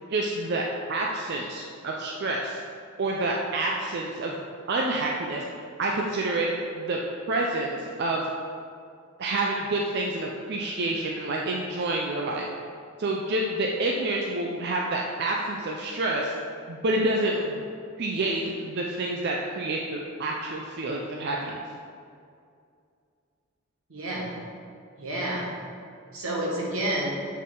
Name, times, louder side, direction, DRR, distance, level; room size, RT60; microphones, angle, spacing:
voice 1, 0.1-0.6 0.9-2.6 3.0-4.3 4.7-5.4 5.8-7.0 7.3-8.3 9.2-12.5 13.0-16.3 16.7-17.7 18.0-21.6, right 2 dB, 50° right, -1 dB, 0.4 m, -28 dB
voice 2, 23.9-24.4 25.0-25.5 26.1-27.1, right 1 dB, 85° right, -3 dB, 1.4 m, -29 dB
7.3 x 4.0 x 3.8 m, 2.4 s
head